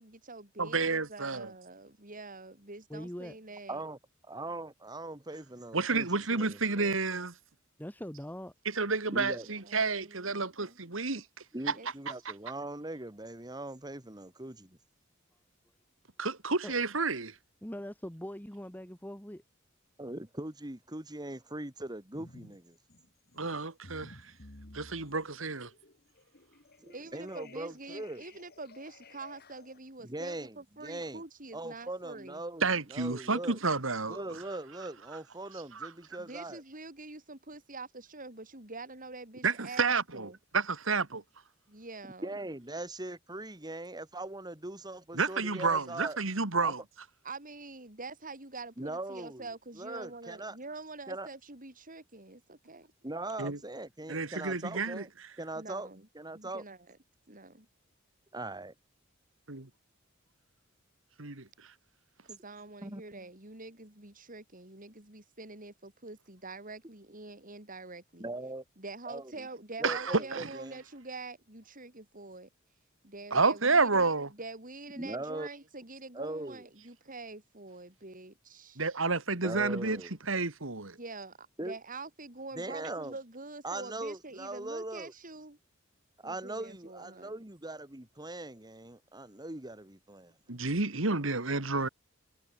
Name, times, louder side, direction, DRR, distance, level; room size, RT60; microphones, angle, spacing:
voice 1, 0.0-3.8 9.3-10.8 11.7-11.9 26.9-32.4 36.2-40.4 41.7-42.4 47.2-52.9 55.5-56.1 56.3-57.0 57.3-57.7 62.2-68.3 68.8-72.5 73.0-78.8 81.0-85.6 86.2-87.4, right 3 dB, 40° right, 6.2 m, -46 dB
voice 2, 0.6-1.5 5.7-7.3 8.7-11.2 11.7-11.8 16.2-17.3 23.4-24.2 24.7-25.7 32.6-34.2 35.7-35.9 39.4-41.2 45.1-46.8 53.4-53.6 54.1-55.0 61.2-61.5 69.8-70.5 73.3-74.3 78.8-80.0 80.3-81.0 90.5-91.9, right 4 dB, 70° right, 2.4 m, -30 dB
voice 3, 2.9-3.4 7.8-8.5 16.6-16.7 17.6-19.4, equal, 10° left, 2.0 m, -41 dB
voice 4, 4.3-6.9 9.0-9.5 11.5-14.8 20.0-22.8 26.8-28.2 30.0-31.2 31.5-33.6 34.1-36.6 42.2-46.2 46.6-46.7 48.8-49.5 49.8-50.6 51.1-51.3 53.0-55.1 55.4-55.9 56.1-56.6 58.3-58.7 62.8-63.0 68.2-68.6 69.1-69.5 69.8-70.8 75.0-75.5 76.1-76.6 79.4-80.1 81.6-81.8 82.5-83.1 83.6-85.1 86.2-90.3, right 2 dB, 20° right, 2.5 m, -40 dB
sound 1, 22.1-22.6 22.9-29.8, left 2 dB, 50° left, 3.9 m, -54 dB
head